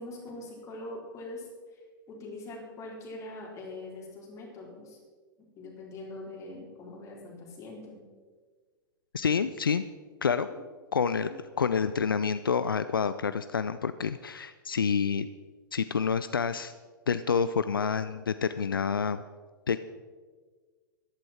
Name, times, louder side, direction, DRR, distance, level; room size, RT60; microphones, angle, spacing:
voice 1, 0.0-1.8 2.1-5.0 5.5-8.0 10.5-10.6 11.2-11.3, left 2 dB, 25° left, -2 dB, 4.2 m, -43 dB
voice 2, 9.1-9.8 10.2-10.5 10.9-11.3 11.6-15.3 15.7-16.7 17.1-19.2 19.7-19.8, left 6 dB, 80° left, 12 dB, 0.4 m, -28 dB
14.0 x 11.5 x 4.4 m, 1.5 s
figure-of-eight pair, 95°, 12 cm